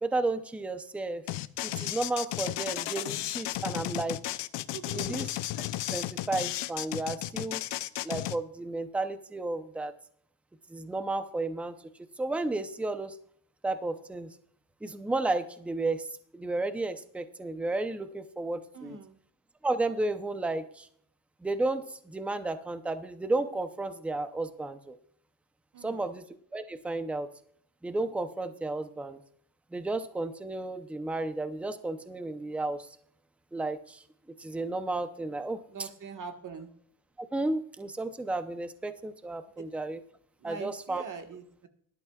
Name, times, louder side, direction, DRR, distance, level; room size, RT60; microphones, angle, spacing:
voice 1, 0.0-1.2 1.6-4.4 4.9-5.3 5.9-7.6 8.0-9.9 10.7-11.7 12.2-13.2 13.6-14.4 14.8-16.1 16.3-19.0 19.6-20.9 21.4-25.0 25.8-26.2 26.5-27.3 27.8-29.2 29.7-32.9 33.5-34.0 34.4-35.9 37.2-40.0 40.4-41.0, right 2 dB, 5° right, 10 dB, 0.6 m, -33 dB
sound 1, 1.3-8.4, left 15 dB, 65° left, 0.7 m, -34 dB
voice 2, 4.7-5.3 18.7-19.2 25.7-26.1 35.7-36.7 39.6-39.7 40.4-41.7, right 5 dB, 40° right, 6 dB, 1.6 m, -43 dB
18.0 x 12.0 x 2.4 m, 0.62 s
cardioid pair, 140°, 47 cm